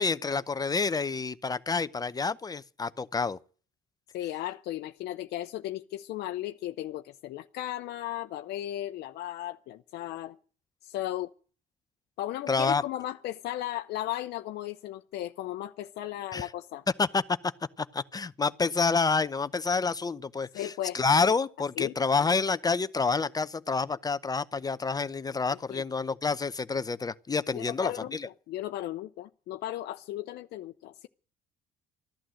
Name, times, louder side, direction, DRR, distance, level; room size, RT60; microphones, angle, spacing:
voice 1, 0.0-3.4 12.5-12.8 16.3-16.5 17.0-17.5 17.8-28.3, left 4 dB, 20° left, 0.7 m, -28 dB
voice 2, 4.1-10.4 10.8-11.3 12.2-16.8 20.5-21.0 21.8-21.9 25.7-25.8 27.5-28.2 28.5-31.1, left 14 dB, 75° left, 0.7 m, -36 dB
14.5 x 11.5 x 7.7 m
cardioid pair, 110°, 17 cm